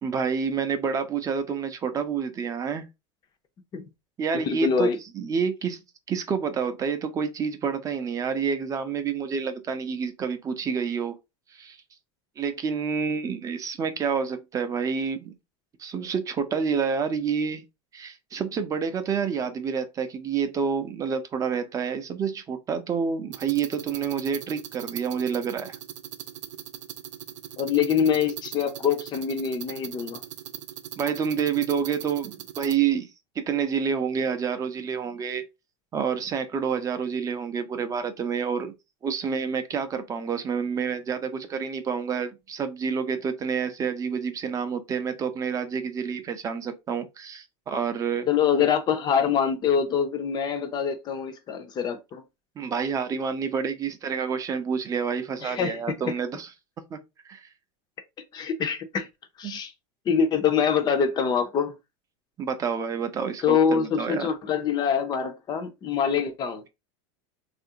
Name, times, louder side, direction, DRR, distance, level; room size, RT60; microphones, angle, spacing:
voice 1, 0.0-2.9 4.2-5.8 6.1-11.1 11.5-11.8 12.4-15.4 15.8-17.6 17.9-25.7 31.0-33.1 33.5-35.4 35.9-38.7 39.0-48.3 52.6-56.5 56.9-57.0 57.3-57.4 59.4-59.6 62.4-64.3, right 6 dB, 20° right, 0.5 m, -28 dB
voice 2, 4.3-5.0 27.6-30.2 48.3-52.2 55.4-56.1 58.3-59.1 59.4-59.7 60.1-61.7 63.4-66.6, left 7 dB, 25° left, 0.5 m, -25 dB
sound 1, 23.3-32.8, right 11 dB, 90° right, 0.5 m, -40 dB
3.3 x 2.5 x 2.7 m
supercardioid pair, 140°, 15 cm